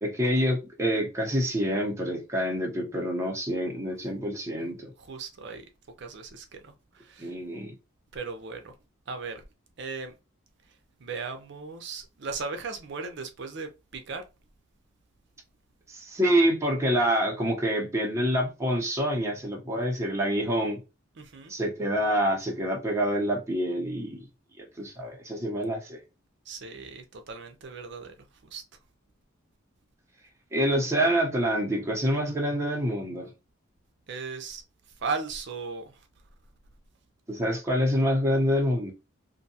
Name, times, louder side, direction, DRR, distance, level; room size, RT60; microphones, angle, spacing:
voice 1, 0.0-4.9 7.2-7.7 15.9-20.8 21.5-24.2 24.6-26.0 30.5-33.3 37.3-38.9, equal, 15° right, 0.7 m, -27 dB
voice 2, 5.0-5.7 6.0-7.3 8.1-8.7 9.1-9.4 9.8-10.1 11.0-14.2 21.2-21.5 26.5-28.6 34.1-34.6 35.0-35.9, right 4 dB, 60° right, 0.5 m, -37 dB
2.6 x 2.2 x 2.6 m
head